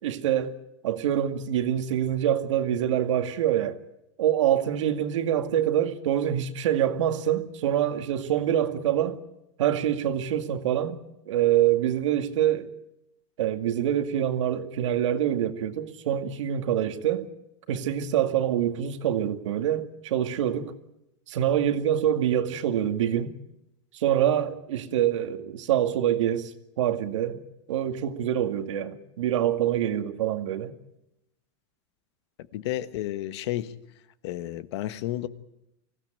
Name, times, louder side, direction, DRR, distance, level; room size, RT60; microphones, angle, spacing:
voice 1, 0.0-0.6 0.8-3.8 4.2-9.2 9.6-11.0 11.3-12.7 13.4-17.3 17.7-20.7 21.3-23.3 23.9-27.4 27.7-30.7, right 10 dB, 90° right, 2.1 m, -25 dB
voice 2, 32.5-33.7 34.2-35.3, left 14 dB, 65° left, 1.4 m, -31 dB
24.5 x 16.5 x 9.1 m
supercardioid pair, 160°, 15 cm